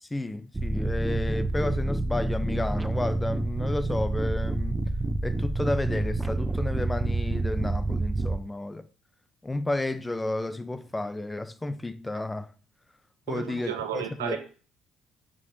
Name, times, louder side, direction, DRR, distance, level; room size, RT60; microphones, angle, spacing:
voice 1, 0.0-4.8 5.2-8.9 9.4-12.5 13.3-14.4, left 2 dB, 15° left, 0.8 m, -32 dB
sound 1, 0.5-8.4, right 2 dB, 20° right, 0.7 m, -28 dB
voice 2, 13.3-14.4, right 10 dB, 75° right, 1.3 m, -33 dB
9.4 x 5.5 x 4.4 m
figure-of-eight pair, 45°, 0 cm